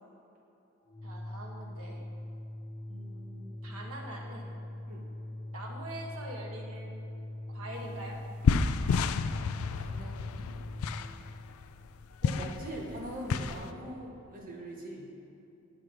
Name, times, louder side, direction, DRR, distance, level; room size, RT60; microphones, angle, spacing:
Organ, 0.9-11.2, left 1 dB, 15° left, 2.2 m, -42 dB
voice 1, 1.0-2.0 2.9-4.5 5.5-7.0 7.5-8.2, right 1 dB, 90° right, -1 dB, 1.6 m, -44 dB
sound 1, 7.8-7.9 8.1-13.7, left 5 dB, 90° left, 0.4 m, -31 dB
voice 2, 9.7-10.5 12.2-15.1, right 1 dB, 40° right, -2 dB, 1.4 m, -42 dB
9.9 x 5.9 x 5.1 m, 2.8 s
head